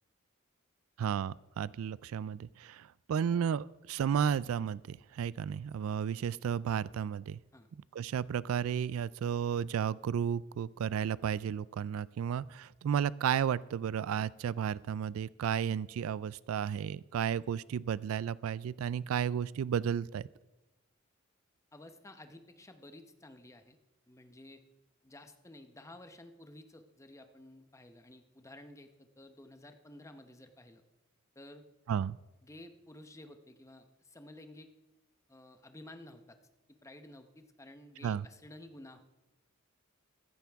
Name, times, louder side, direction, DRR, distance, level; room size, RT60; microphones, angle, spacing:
voice 1, 1.0-7.4 7.9-20.3 31.9-32.2 38.0-38.3, right 8 dB, 85° right, 21 dB, 0.3 m, -33 dB
voice 2, 21.7-23.8 24.1-24.6 25.0-30.8 31.3-31.6 32.4-34.7 35.3-36.4 36.8-39.0, left 1 dB, 15° left, 8 dB, 0.9 m, -53 dB
15.0 x 13.5 x 3.5 m, 1.1 s
head